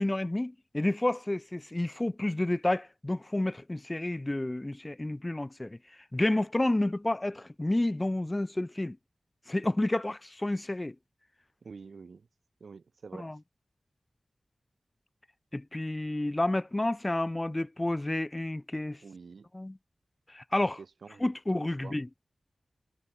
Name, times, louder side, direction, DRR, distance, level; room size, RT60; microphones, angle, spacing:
voice 1, 0.0-5.8 6.1-9.0 9.5-11.0 13.2-13.4 15.5-19.0 19.5-19.8 20.3-20.8 21.2-22.1, left 1 dB, 25° left, 2.1 m, -30 dB
voice 2, 11.6-12.3 12.6-13.3 19.0-19.5 20.8-22.0, right 5 dB, 80° right, 8.0 m, -48 dB
wide cardioid pair, 75°, 0 cm